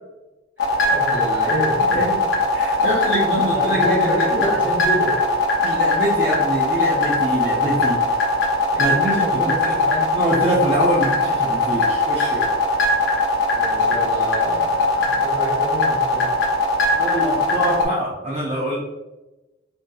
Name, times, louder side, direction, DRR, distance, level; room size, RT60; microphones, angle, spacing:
sound 1, 0.6-17.9, left 3 dB, 85° left, 0.6 m, -20 dB
voice 1, 0.6-1.8 3.2-5.1 8.7-10.1 13.5-16.5, equal, 10° right, -8 dB, 1.4 m, -28 dB
voice 2, 2.5-4.5 5.6-8.0 8.8-9.8 10.1-12.5 16.9-18.8, right 1 dB, 35° right, -6 dB, 0.5 m, -24 dB
2.6 x 2.6 x 2.2 m, 1.1 s
head